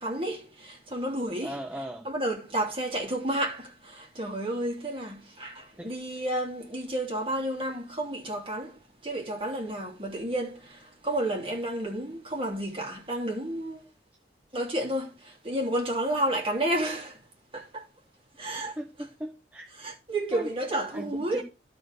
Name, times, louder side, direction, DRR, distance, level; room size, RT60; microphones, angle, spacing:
voice 1, 0.0-1.6 2.0-13.8 14.5-17.2 17.5-17.8 18.4-18.7 19.8-21.4, right 1 dB, 30° right, 3.1 m, -31 dB
voice 2, 1.4-2.1 5.8-5.9 18.8-19.7 20.3-20.5 20.9-21.4, equal, 10° right, 0.8 m, -38 dB
12.0 x 4.6 x 6.4 m
head